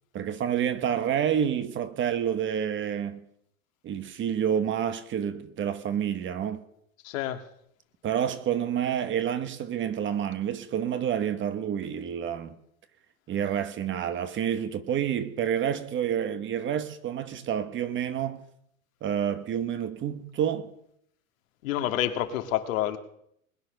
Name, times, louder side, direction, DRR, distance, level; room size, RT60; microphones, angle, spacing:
voice 1, 0.1-3.2 3.8-6.6 8.0-12.6 13.3-18.4 19.0-20.7, right 9 dB, 30° right, 1.2 m, -28 dB
voice 2, 7.0-7.4 21.6-23.0, left 12 dB, 70° left, 2.1 m, -28 dB
21.0 x 9.4 x 6.5 m
supercardioid pair, 125°, 41 cm